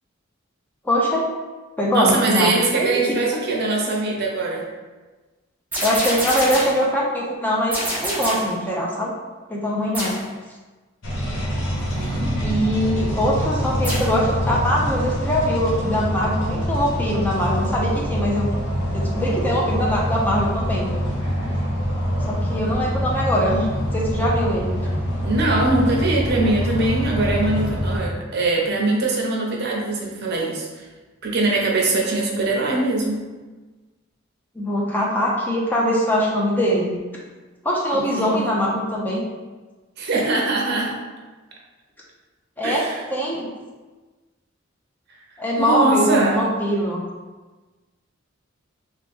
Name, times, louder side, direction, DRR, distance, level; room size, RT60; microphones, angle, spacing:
voice 1, 0.8-1.2 1.8-3.2 5.8-9.1 9.5-10.2 12.4-18.5 18.9-20.9 22.3-24.8 34.6-36.9 37.6-39.2 42.6-42.9 43.1-43.5 45.4-47.0, equal, 10° left, -4 dB, 0.5 m, -22 dB
voice 2, 1.9-4.7 11.7-12.4 25.2-30.9 31.2-33.3 37.9-38.5 40.0-41.0 42.6-43.0 45.6-46.4, right 2 dB, 55° right, -1 dB, 0.6 m, -22 dB
sound 1, 5.7-6.9 7.7-8.6 9.9-10.3 13.8-14.2, equal, 10° right, 0.9 m, -26 dB
sound 2, 11.0-28.1, equal, 60° left, 0.9 m, -25 dB
3.0 x 2.9 x 3.4 m, 1.3 s
head